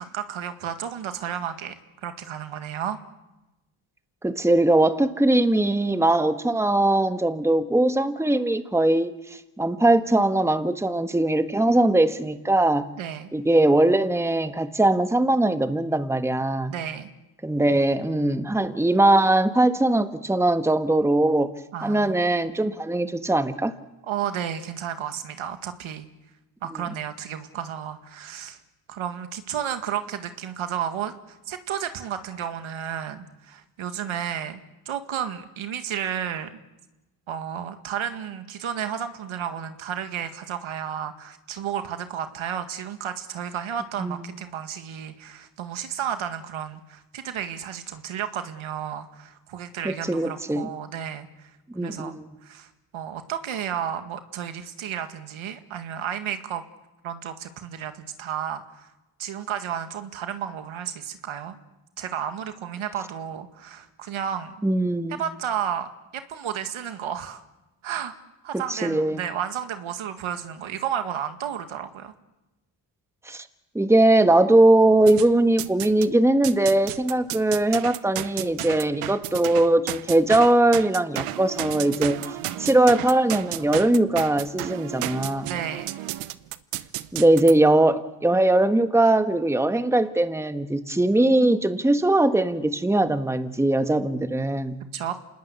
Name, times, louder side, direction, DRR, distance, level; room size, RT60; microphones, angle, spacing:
voice 1, 0.0-3.0 13.0-13.3 16.7-17.1 21.7-22.2 24.1-26.1 26.6-28.6 28.9-36.6 37.3-51.5 51.8-52.2 52.4-56.6 57.0-58.9 59.2-61.6 62.0-64.6 65.1-67.4 67.8-68.1 68.4-72.1 82.2-82.7 85.5-85.9 94.9-95.1, right 9 dB, 70° right, 8 dB, 2.0 m, -32 dB
voice 2, 4.2-9.1 9.6-12.9 13.3-16.7 17.4-21.5 21.8-23.7 44.0-44.2 49.8-50.7 51.7-52.3 64.6-65.2 68.7-69.2 73.3-73.4 73.7-82.2 82.6-85.5 87.1-94.8, right 1 dB, 5° right, 9 dB, 1.4 m, -20 dB
sound 1, 75.1-76.1 76.4-87.5, right 15 dB, 90° right, 0.9 m, -33 dB
27.5 x 20.0 x 8.3 m, 1.0 s
cardioid pair, 80°, 49 cm